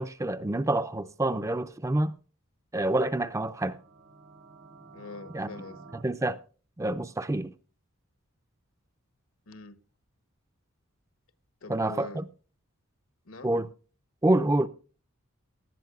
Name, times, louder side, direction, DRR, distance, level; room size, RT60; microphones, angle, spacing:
voice 1, 0.0-2.1 2.7-3.8 5.3-5.5 6.0-6.4 6.8-7.5 11.7-12.2 13.4-13.7 14.2-14.7, right 1 dB, 15° right, 0.4 m, -27 dB
sound 1, 3.5-6.0, right 4 dB, 70° right, 1.3 m, -51 dB
voice 2, 4.9-5.9 9.5-9.8 11.6-12.2 13.2-13.5, left 3 dB, 75° left, 1.1 m, -44 dB
18.0 x 11.5 x 2.4 m
head